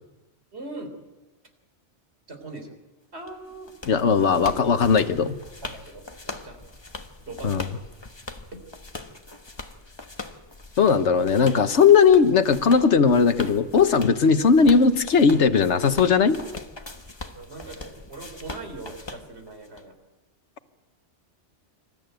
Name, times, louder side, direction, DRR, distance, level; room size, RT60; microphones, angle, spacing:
voice 1, 0.5-0.9 2.3-2.8 3.1-3.7 5.6-6.6 7.3-7.7 8.5-8.6 17.3-19.9, right 2 dB, 60° right, 5 dB, 3.8 m, -40 dB
sound 1, 3.3-19.8, left 2 dB, 25° left, 1.2 m, -41 dB
voice 2, 3.9-5.4 7.4-7.7 10.8-16.4, left 5 dB, 70° left, 9 dB, 1.4 m, -18 dB
27.0 x 14.0 x 9.2 m, 1.1 s
omnidirectional pair, 1.2 m